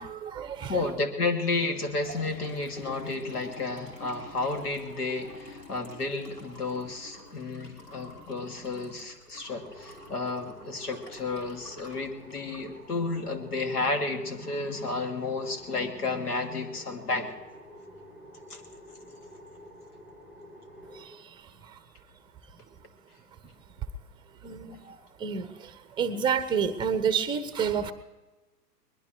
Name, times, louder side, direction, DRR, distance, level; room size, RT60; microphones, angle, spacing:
voice 1, 0.0-0.9 20.9-21.8 24.4-27.9, right 7 dB, 10° right, 12 dB, 0.8 m, -30 dB
voice 2, 0.7-17.3 18.5-18.6, left 3 dB, 70° left, 5 dB, 2.4 m, -32 dB
Liquid, 1.8-13.6, left 1 dB, 85° left, 4.0 m, -48 dB
sound 1, 9.5-21.1, equal, 25° left, 3.9 m, -49 dB
22.5 x 20.5 x 3.1 m, 1.1 s
figure-of-eight pair, 110°, 47 cm